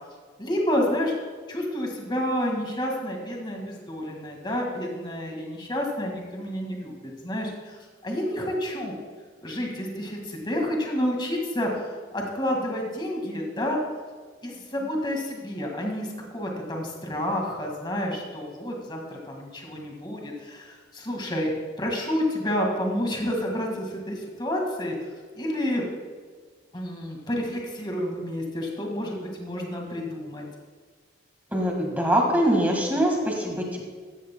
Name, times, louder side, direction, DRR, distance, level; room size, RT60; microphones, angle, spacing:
voice 1, 0.4-1.1 1.5-9.0 9.4-13.8 14.4-21.5 21.8-25.1 25.4-25.8 26.7-30.5, equal, 25° left, 0 dB, 1.8 m, -29 dB
voice 2, 31.5-33.8, right 1 dB, 10° right, 0 dB, 1.6 m, -23 dB
14.5 x 13.5 x 2.2 m, 1.5 s
head